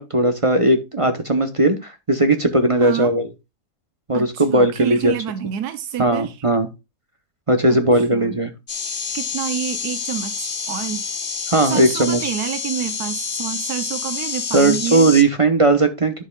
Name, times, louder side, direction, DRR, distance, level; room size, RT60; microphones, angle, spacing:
voice 1, 0.0-3.3 4.1-5.1 6.0-6.7 7.5-8.5 11.5-12.2 14.5-16.2, right 2 dB, 30° right, 0.7 m, -17 dB
voice 2, 2.8-3.1 4.1-6.4 7.7-8.4 8.9-11.0 11.6-15.1, right 10 dB, 80° right, 1.3 m, -28 dB
sound 1, 8.7-15.2, left 5 dB, 40° left, 1.1 m, -28 dB
10.5 x 6.6 x 2.3 m
omnidirectional pair, 1.6 m